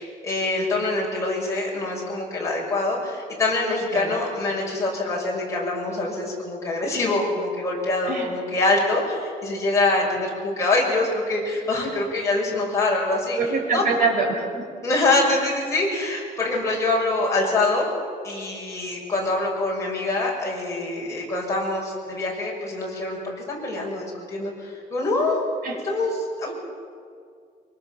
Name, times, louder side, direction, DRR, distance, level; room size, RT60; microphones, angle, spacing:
voice 1, 0.0-13.4 13.7-13.8 14.8-17.9 18.2-25.4 25.8-26.5, left 2 dB, 20° left, -3 dB, 6.3 m, -25 dB
voice 2, 13.4-14.6 25.6-25.8, right 4 dB, 60° right, 1 dB, 5.5 m, -24 dB
24.5 x 23.5 x 7.2 m, 2.2 s
cardioid pair, 180°, 16 cm